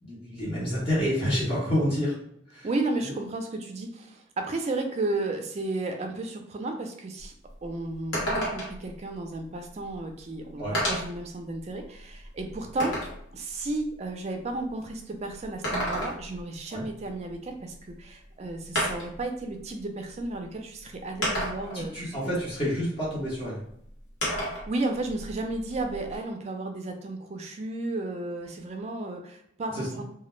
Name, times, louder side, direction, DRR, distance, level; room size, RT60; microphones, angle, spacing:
voice 1, 0.0-2.2 2.5-2.7 3.0-3.1 10.6-10.8 16.7-16.8 21.7-23.6 29.7-29.9, equal, 30° left, -8 dB, 0.8 m, -28 dB
voice 2, 2.6-7.3 7.6-13.0 13.3-22.1 24.5-30.0, right 2 dB, 35° right, 4 dB, 0.3 m, -33 dB
sound 1, 7.2-7.3 7.6-7.7 8.1-8.9 9.9-10.0 10.7-11.2 11.8-13.2 15.4-16.4 17.9-18.0 18.7-19.2 20.2-20.3 21.2-21.8 24.2-24.7 25.0-26.2, equal, 65° left, 1.0 m, -30 dB
2.2 x 2.0 x 3.0 m, 0.70 s
head